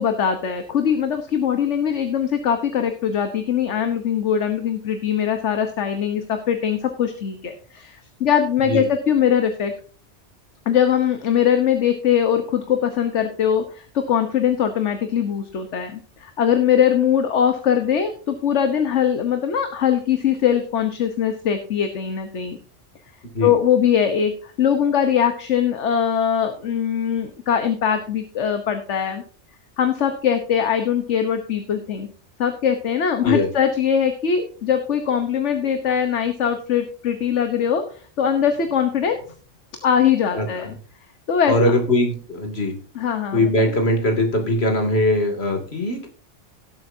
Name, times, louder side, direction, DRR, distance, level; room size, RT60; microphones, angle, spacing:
voice 1, 0.0-9.7 10.7-22.6 23.4-29.2 29.8-32.1 32.4-39.2 39.8-40.7 41.3-41.8 42.9-43.8, left 8 dB, 75° left, 7 dB, 1.4 m, -21 dB
voice 2, 41.5-42.7 43.3-46.1, left 1 dB, 60° left, 4 dB, 2.9 m, -20 dB
17.5 x 7.9 x 2.7 m, 0.41 s
omnidirectional pair, 1.2 m